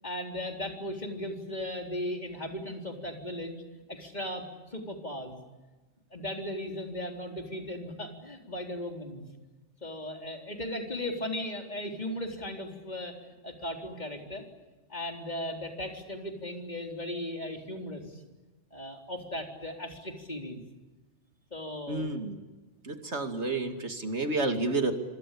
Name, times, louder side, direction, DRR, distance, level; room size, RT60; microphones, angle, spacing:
voice 1, 0.0-3.6 3.9-5.4 6.1-9.2 9.8-14.4 14.9-18.2 18.7-20.6 21.5-22.1, left 1 dB, 35° left, 3 dB, 4.1 m, -37 dB
voice 2, 21.9-22.4 22.8-24.9, right 3 dB, 70° right, 6 dB, 2.8 m, -30 dB
26.5 x 26.0 x 8.5 m, 1.2 s
omnidirectional pair, 1.2 m